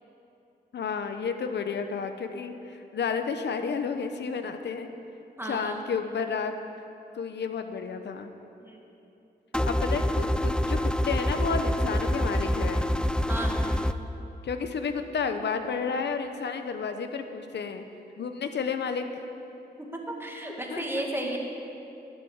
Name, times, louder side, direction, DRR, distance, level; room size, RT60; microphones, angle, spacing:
voice 1, 0.7-4.9 5.4-6.5 7.1-8.3 9.7-12.9 14.4-17.8 18.2-19.0 20.5-21.4, left 5 dB, 80° left, 7 dB, 0.9 m, -31 dB
voice 2, 5.4-5.9 8.6-8.8 13.3-13.5 20.2-21.4, right 1 dB, 15° right, 0 dB, 2.0 m, -33 dB
sound 1, 9.5-13.9, left 1 dB, 5° left, 0.4 m, -26 dB
20.0 x 8.0 x 7.3 m, 2.9 s
wide cardioid pair, 105°, 17 cm